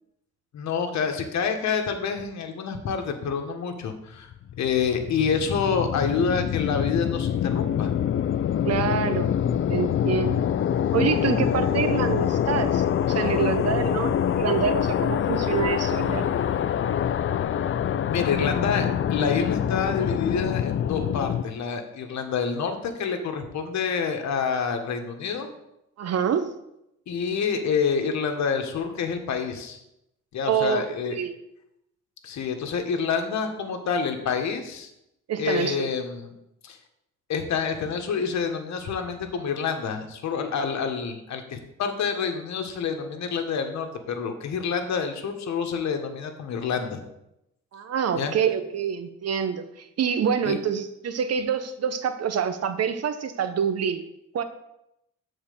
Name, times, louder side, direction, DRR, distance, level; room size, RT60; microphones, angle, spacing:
voice 1, 0.5-4.3 4.6-7.9 18.1-25.5 27.1-29.8 30.3-31.1 32.2-34.9 35.4-36.3 36.6-36.8 37.3-47.0 48.1-48.3 50.4-50.6, left 6 dB, 65° left, 5 dB, 1.4 m, -27 dB
sound 1, 4.3-21.4, left 9 dB, 45° left, 0.4 m, -25 dB
voice 2, 8.6-9.3 9.7-10.4 10.9-16.3 26.0-26.5 30.5-31.4 35.3-35.9 47.7-54.0 54.3-54.4, right 7 dB, 55° right, 10 dB, 1.0 m, -26 dB
7.4 x 4.3 x 6.7 m, 0.83 s
cardioid pair, 90°, 30 cm